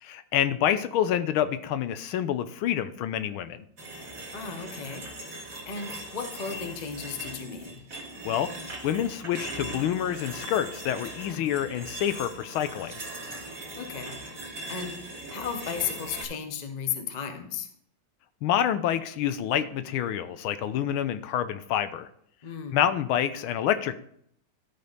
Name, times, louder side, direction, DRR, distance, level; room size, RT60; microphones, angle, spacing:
voice 1, 0.0-3.6 8.2-8.5 8.8-13.0 18.4-22.1 22.7-24.0, left 10 dB, 80° left, 11 dB, 1.5 m, -27 dB
sound 1, 3.8-16.2, right 1 dB, 40° right, 2.1 m, -40 dB
voice 2, 4.3-7.8 11.3-11.5 13.8-14.2 14.7-17.7 22.4-22.8, left 7 dB, 40° left, 6 dB, 0.6 m, -35 dB
12.5 x 5.2 x 4.0 m, 0.67 s
omnidirectional pair, 2.3 m